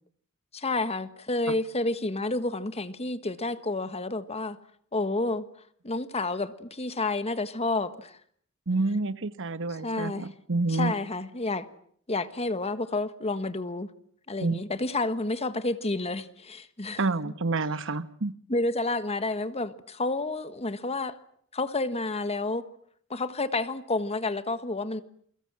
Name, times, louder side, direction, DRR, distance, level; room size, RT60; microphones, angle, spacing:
voice 1, 0.5-4.6 4.9-5.4 5.8-8.2 9.8-10.3 10.7-11.7 12.1-13.9 14.3-17.3 18.5-21.2 21.5-22.6 23.1-25.0, left 2 dB, 30° left, 1.5 m, -30 dB
voice 2, 8.7-10.9 14.4-14.6 17.0-18.3, right 3 dB, 65° right, 1.2 m, -28 dB
28.5 x 23.0 x 7.6 m
head